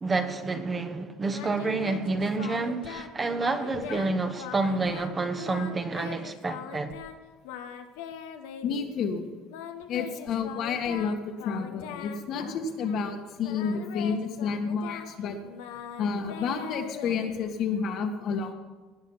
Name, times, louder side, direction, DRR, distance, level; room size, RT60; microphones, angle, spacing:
voice 1, 0.0-7.0, right 3 dB, 20° right, 1.2 m, -29 dB
Singing, 1.3-3.1 3.4-4.1 4.4-7.2 7.4-8.9 9.5-13.1 13.4-17.8, left 8 dB, 85° left, 1.2 m, -41 dB
voice 2, 8.6-9.3 9.9-15.4 16.0-18.5, left 5 dB, 55° left, 1.7 m, -30 dB
19.5 x 6.5 x 5.7 m
supercardioid pair, 115°, 0 cm